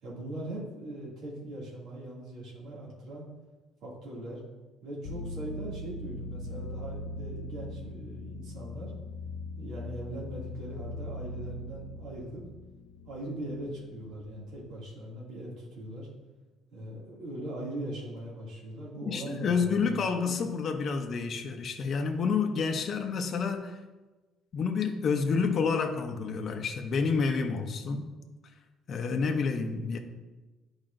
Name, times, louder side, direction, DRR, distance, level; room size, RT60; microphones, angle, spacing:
voice 1, 0.0-3.3 3.8-4.4 4.8-8.9 9.6-12.4 13.1-16.1 16.7-20.4, right 1 dB, 65° right, 2.3 m, -40 dB
sound 1, 5.0-14.6, left 2 dB, 85° left, 0.4 m, -41 dB
voice 2, 19.1-23.8 24.5-28.1 28.9-30.0, left 5 dB, 40° left, 0.6 m, -29 dB
10.5 x 4.8 x 2.6 m
cardioid pair, 145°, 0 cm